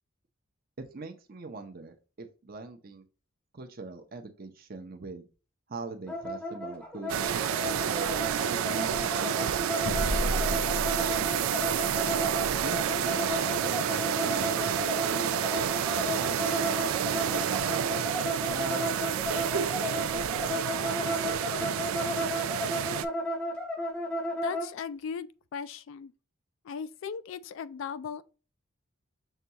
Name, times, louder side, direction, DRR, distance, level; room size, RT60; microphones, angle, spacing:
voice 1, 0.8-3.0 3.5-5.3 5.7-7.2 7.6-11.2 12.6-13.2 13.6-15.3 15.9-18.1 18.5-19.0 19.3-19.7 20.4-22.7, right 3 dB, 45° right, 0.6 m, -43 dB
sound 1, 6.1-24.7, left 1 dB, 5° left, 0.7 m, -34 dB
sound 2, 7.1-23.1, right 9 dB, 75° right, 0.3 m, -29 dB
sound 3, 9.8-14.7, equal, 85° left, 0.8 m, -36 dB
voice 2, 24.4-26.1 26.6-28.2, left 6 dB, 65° left, 0.3 m, -37 dB
6.5 x 2.3 x 2.8 m
head